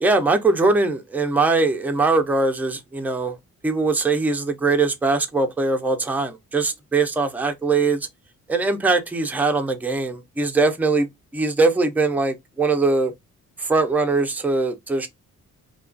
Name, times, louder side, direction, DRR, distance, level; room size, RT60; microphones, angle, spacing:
voice 1, 0.0-3.4 3.6-8.1 8.5-13.1 13.6-15.1, right 3 dB, 5° right, 0.4 m, -21 dB
2.3 x 2.2 x 2.4 m
cardioid pair, 90°, 30 cm